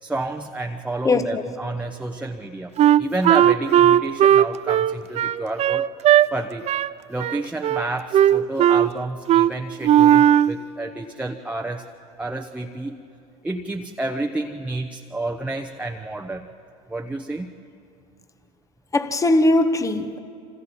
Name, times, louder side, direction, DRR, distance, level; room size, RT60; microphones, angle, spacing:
voice 1, 0.0-2.7 3.0-5.9 6.3-6.7 7.1-11.8 12.2-13.0 13.4-16.5 16.9-17.5, right 2 dB, 5° right, 0.9 m, -30 dB
voice 2, 1.0-1.4 18.9-20.2, left 2 dB, 15° left, 1.1 m, -20 dB
Wind instrument woodwind instrument, 2.8-6.3 6.7-6.9 7.2-7.9 8.1-8.9 9.3-9.5 9.8-10.5, right 11 dB, 35° right, 0.4 m, -16 dB
27.5 x 26.0 x 4.3 m
supercardioid pair, 90°, 18 cm